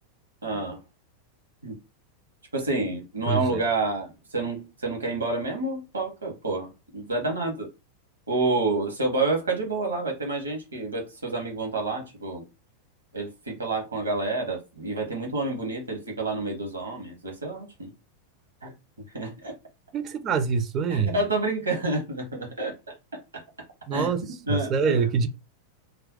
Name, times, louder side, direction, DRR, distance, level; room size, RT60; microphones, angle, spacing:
voice 1, 0.4-0.8 1.6-1.8 2.5-7.7 8.3-12.4 13.1-17.9 18.6-18.7 19.1-19.5 20.9-22.7 23.1-23.4 23.9-24.1 24.5-25.1, right 2 dB, 75° right, 1.0 m, -29 dB
voice 2, 3.3-3.6 19.9-21.2 23.9-24.2 24.5-25.4, right 6 dB, 30° right, 0.4 m, -25 dB
2.5 x 2.1 x 3.8 m
figure-of-eight pair, 90°, 0 cm